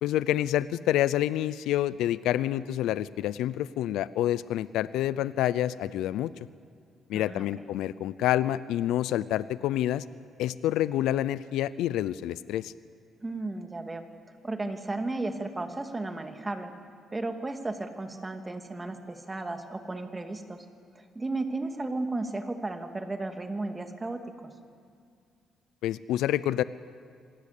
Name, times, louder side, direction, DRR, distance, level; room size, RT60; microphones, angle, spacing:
voice 1, 0.0-6.3 7.1-10.0 10.4-12.7 25.8-26.6, left 13 dB, 90° left, 17 dB, 0.6 m, -28 dB
voice 2, 7.1-7.4 13.2-14.0 14.4-16.7 17.1-20.6 21.1-24.5, right 2 dB, 20° right, 6 dB, 2.5 m, -34 dB
26.5 x 18.5 x 8.4 m, 2.3 s
cardioid pair, 90°, 0 cm